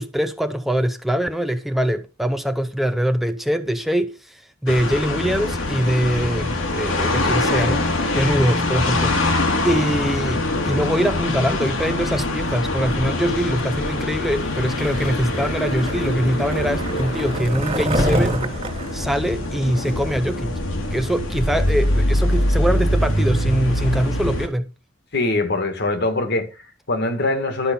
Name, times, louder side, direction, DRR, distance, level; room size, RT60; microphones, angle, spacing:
voice 1, 0.0-9.3 9.6-18.4 18.9-20.5 20.9-24.7, equal, ahead, 0.6 m, -23 dB
sound 1, 4.7-24.5, left 1 dB, 75° left, 2.0 m, -23 dB
Skateboard, 14.7-20.1, right 1 dB, 30° right, 2.0 m, -27 dB
voice 2, 25.1-27.7, left 2 dB, 60° left, 1.9 m, -23 dB
12.0 x 5.8 x 5.4 m
head